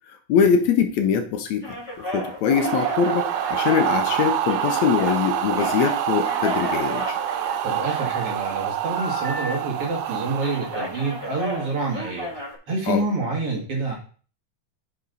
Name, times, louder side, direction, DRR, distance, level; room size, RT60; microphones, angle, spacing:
voice 1, 0.3-1.8 2.1-7.2 12.9-13.0, left 7 dB, 70° left, 6 dB, 2.0 m, -22 dB
sound 1, 1.6-5.2 5.5-8.0 8.7-10.0 10.3-12.6, equal, 10° left, 3.8 m, -33 dB
sound 2, 2.4-11.5, right 10 dB, 90° right, 2.2 m, -26 dB
voice 2, 7.6-12.3 12.7-14.0, right 3 dB, 50° right, -2 dB, 3.1 m, -27 dB
8.5 x 6.3 x 4.0 m, 0.41 s
omnidirectional pair, 3.5 m